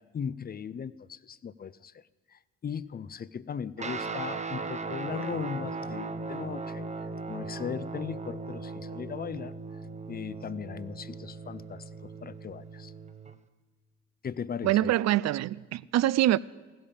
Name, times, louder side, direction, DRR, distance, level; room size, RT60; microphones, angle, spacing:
voice 1, 0.0-2.0 2.3-6.8 7.3-9.5 10.1-12.9 14.2-14.9, left 7 dB, 30° left, 0.4 m, -38 dB
Guitar, 3.8-13.4, right 3 dB, 25° right, 0.7 m, -38 dB
voice 2, 14.6-16.4, right 14 dB, 60° right, 0.4 m, -24 dB
15.5 x 10.5 x 7.0 m
cardioid pair, 90°, 30 cm